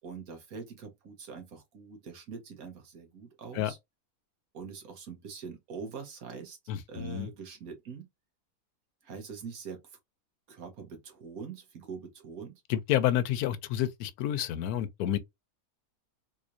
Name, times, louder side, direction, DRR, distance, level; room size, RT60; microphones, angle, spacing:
voice 1, 0.0-3.8 4.5-6.6 6.9-8.1 9.0-10.0 10.5-12.6, right 5 dB, 70° right, 1.5 m, -43 dB
voice 2, 6.7-7.3 12.7-15.2, left 11 dB, 85° left, 1.1 m, -29 dB
3.5 x 3.1 x 2.5 m
omnidirectional pair, 1.6 m